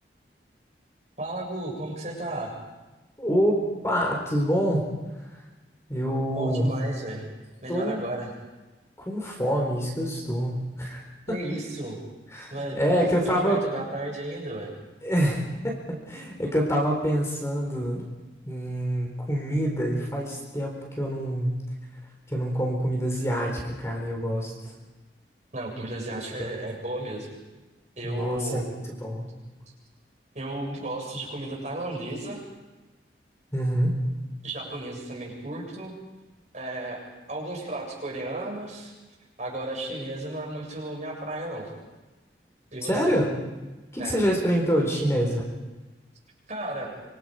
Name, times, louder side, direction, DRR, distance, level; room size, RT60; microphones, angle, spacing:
voice 1, 1.2-2.5 6.3-7.3 7.6-8.3 11.3-12.0 12.5-14.7 25.5-27.4 28.0-28.7 30.3-32.4 34.4-35.9 36.5-37.0 37.3-38.9 39.4-41.7 42.7-43.2 44.0-44.2 46.5-46.9, right 1 dB, 40° right, -1 dB, 7.3 m, -34 dB
voice 2, 3.2-3.6 3.8-4.9 5.9-6.7 7.7-8.0 9.0-11.0 12.3-13.6 15.0-18.1 18.5-21.6 22.3-24.5 26.1-26.2 28.0-29.3 33.5-34.0 42.9-43.3 43.9-45.5, equal, 15° left, 0 dB, 4.2 m, -26 dB
26.0 x 25.0 x 5.1 m, 1.2 s
head